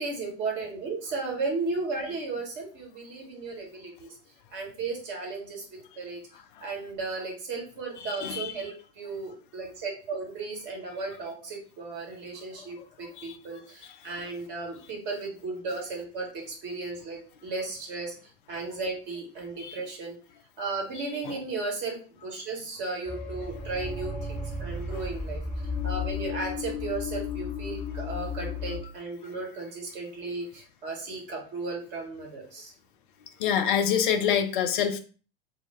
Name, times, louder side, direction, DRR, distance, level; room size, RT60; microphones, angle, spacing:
voice 1, 0.0-4.1 4.5-5.6 6.0-6.2 6.6-18.1 18.5-20.1 20.6-25.4 25.8-32.7, right 3 dB, 40° right, 0 dB, 1.0 m, -35 dB
voice 2, 8.0-8.7 13.2-13.3 13.8-13.9 19.6-19.8 21.2-21.4 24.9-25.0 33.4-35.0, left 8 dB, 60° left, 8 dB, 0.4 m, -27 dB
sound 1, 23.1-28.8, left 4 dB, ahead, 0.8 m, -34 dB
2.1 x 2.1 x 3.2 m, 0.38 s
figure-of-eight pair, 80°, 30 cm